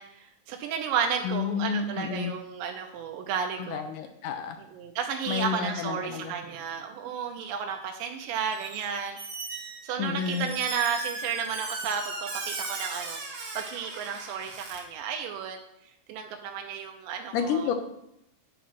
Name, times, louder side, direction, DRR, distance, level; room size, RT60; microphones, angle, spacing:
voice 1, 0.0-3.9 4.6-9.2 9.8-13.2 13.5-15.6 16.1-17.7, right 7 dB, 80° right, 3 dB, 2.3 m, -33 dB
voice 2, 1.2-2.3 3.6-4.6 5.3-6.3 10.0-10.5 17.3-17.7, left 7 dB, 80° left, 7 dB, 2.1 m, -30 dB
Squeak, 8.5-8.9 9.1-14.8, right 3 dB, 50° right, 1.8 m, -37 dB
9.3 x 4.0 x 6.0 m, 0.80 s
omnidirectional pair, 4.0 m